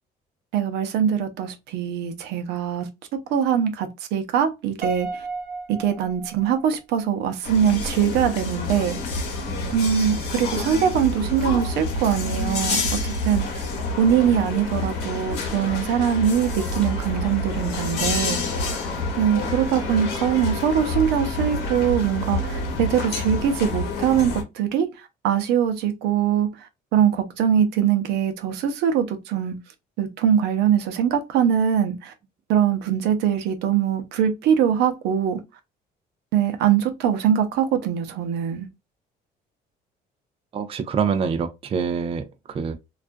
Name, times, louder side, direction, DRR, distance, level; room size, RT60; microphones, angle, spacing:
voice 1, 0.5-2.9 3.3-5.3 5.7-9.0 9.7-13.6 14.0-18.4 19.2-29.6 30.0-32.1 32.5-35.4 36.3-38.7, right 8 dB, 85° right, 0.6 m, -22 dB
Piano, 4.8-7.1, right 3 dB, 55° right, 1.0 m, -34 dB
sound 1, 7.4-24.4, left 2 dB, 75° left, 0.9 m, -28 dB
voice 2, 9.5-9.9 40.5-42.8, right 6 dB, 35° right, 0.4 m, -26 dB
sound 2, 13.8-23.8, equal, 5° left, 1.0 m, -41 dB
2.4 x 2.2 x 2.5 m
cardioid pair, 110°, 17 cm